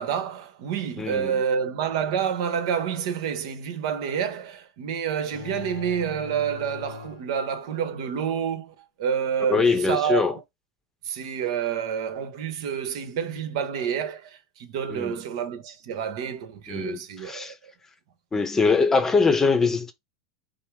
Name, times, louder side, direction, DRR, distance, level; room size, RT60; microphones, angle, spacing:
voice 1, 0.0-10.4 11.0-17.5, right 7 dB, 65° right, 1.0 m, -28 dB
voice 2, 1.0-1.4 9.5-10.4 14.9-15.2 16.7-17.5 18.3-19.9, left 4 dB, 15° left, 0.8 m, -23 dB
sound 1, 5.3-7.9, left 10 dB, 80° left, 0.7 m, -41 dB
5.4 x 2.0 x 4.6 m
supercardioid pair, 130°, 3 cm